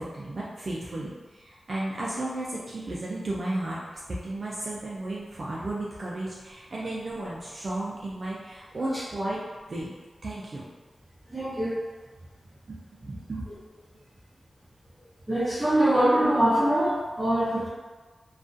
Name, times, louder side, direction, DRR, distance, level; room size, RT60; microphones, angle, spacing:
voice 1, 0.0-3.8 4.1-9.4 9.7-9.9 10.2-10.6 12.7-13.5, right 1 dB, 55° right, -6 dB, 0.4 m, -34 dB
voice 2, 11.3-11.7 15.3-17.7, right 1 dB, 15° right, -8 dB, 1.0 m, -23 dB
2.3 x 2.2 x 2.5 m, 1.3 s
cardioid pair, 55°, 0 cm